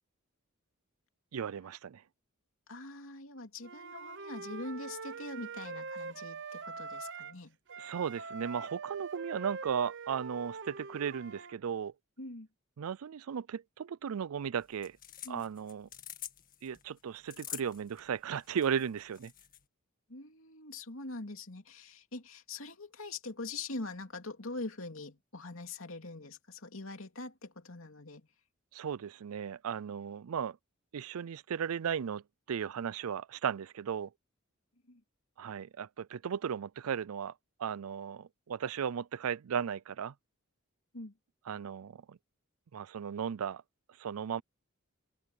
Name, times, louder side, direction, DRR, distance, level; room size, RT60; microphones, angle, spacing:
voice 1, 1.3-2.0 7.8-11.9 12.8-15.0 15.3-15.9 16.6-19.3 28.7-30.6 30.9-32.2 32.5-34.1 35.4-37.3 37.6-40.1 41.5-42.2 42.7-43.6 44.0-44.4, right 7 dB, 85° right, 0.4 m, -36 dB
voice 2, 2.7-7.6 12.2-12.5 15.2-15.4 20.1-28.2 34.9-35.0 40.9-41.1, left 2 dB, 70° left, 2.9 m, -43 dB
Wind instrument woodwind instrument, 3.6-7.4 7.7-11.5, right 4 dB, 60° right, 1.0 m, -43 dB
sound 1, 14.6-19.6, left 11 dB, 40° left, 2.0 m, -47 dB
open air
head